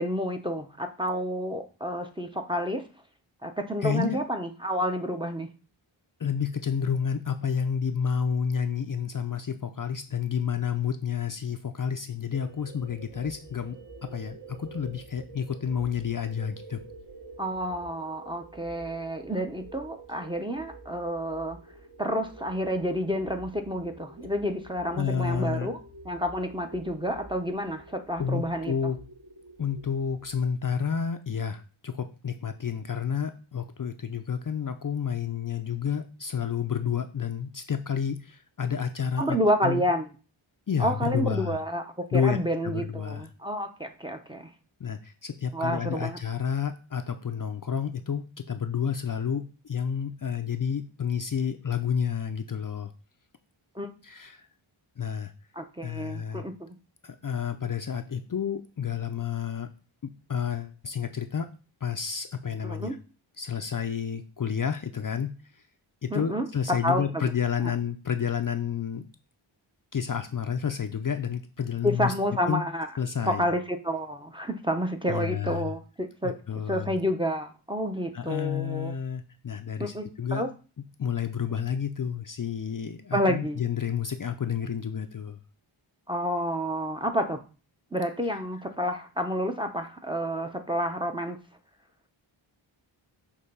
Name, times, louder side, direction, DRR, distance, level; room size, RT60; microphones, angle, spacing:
voice 1, 0.0-2.9 3.4-5.5 17.4-21.6 22.0-25.8 26.0-28.9 39.2-40.1 40.8-41.8 42.1-44.5 45.5-46.2 53.7-53.9 55.5-56.8 62.6-63.0 66.1-67.3 71.8-72.9 73.3-76.3 76.7-78.9 79.8-80.1 80.3-80.5 83.1-83.6 86.1-87.4 87.9-91.4, equal, 10° right, 5 dB, 0.8 m, -29 dB
voice 2, 3.8-4.2 6.2-16.8 24.9-25.7 28.2-29.0 29.6-39.4 39.6-39.8 40.7-41.6 42.1-43.3 44.8-52.9 54.0-54.5 55.0-55.3 55.8-56.4 57.0-59.7 60.0-61.5 61.8-63.0 63.4-65.6 66.0-69.1 69.9-72.1 72.5-72.6 73.0-73.5 75.1-75.7 76.2-77.0 78.1-80.4 81.0-85.4, left 7 dB, 40° left, 7 dB, 0.5 m, -30 dB
sound 1, 12.3-30.6, right 2 dB, 45° right, 1.2 m, -48 dB
6.5 x 2.9 x 5.4 m, 0.35 s
wide cardioid pair, 65°, 49 cm